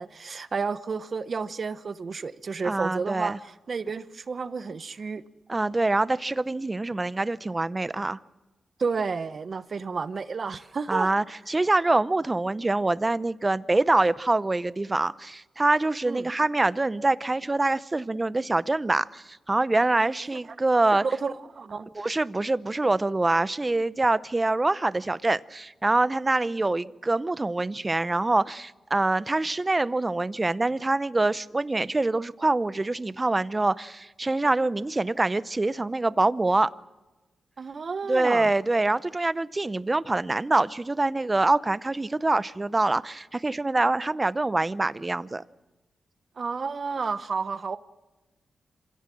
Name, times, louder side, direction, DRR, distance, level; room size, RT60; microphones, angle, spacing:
voice 1, 0.0-5.2 8.8-11.1 16.1-16.3 20.9-21.9 37.6-38.5 46.4-47.8, right 5 dB, 50° right, 1.0 m, -31 dB
voice 2, 2.6-3.4 5.5-8.2 10.9-21.0 21.9-36.7 38.1-45.4, right 2 dB, 25° right, 0.7 m, -25 dB
26.5 x 16.5 x 7.7 m
cardioid pair, 65°, 0 cm